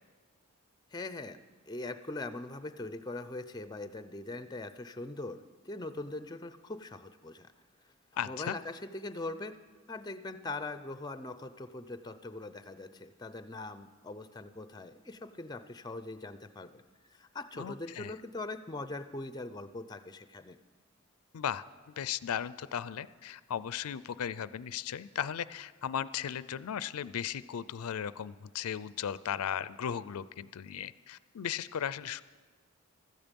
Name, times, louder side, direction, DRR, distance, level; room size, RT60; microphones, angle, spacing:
voice 1, 0.9-1.4 1.7-7.5 8.3-9.6 9.9-16.8 17.1-20.6, left 2 dB, 20° left, 11 dB, 0.4 m, -41 dB
voice 2, 8.2-8.6 17.5-18.1 21.3-32.2, left 9 dB, 90° left, 17 dB, 0.4 m, -36 dB
16.0 x 13.0 x 5.3 m, 1.4 s
head